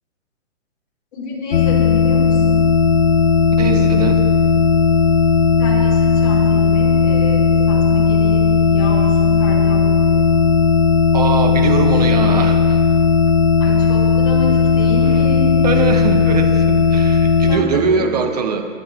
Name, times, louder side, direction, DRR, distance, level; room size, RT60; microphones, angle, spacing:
voice 1, 1.1-2.7 5.6-9.8 10.1-10.3 13.6-15.8 17.4-18.1, left 3 dB, 25° left, -7 dB, 3.4 m, -28 dB
sound 1, 1.5-17.6, left 5 dB, 50° left, 0.7 m, -15 dB
voice 2, 3.6-4.2 11.1-12.8 15.1-15.2 15.6-18.7, right 5 dB, 30° right, 6 dB, 0.8 m, -21 dB
28.0 x 9.3 x 2.8 m, 2.2 s
hypercardioid pair, 170°, 38 cm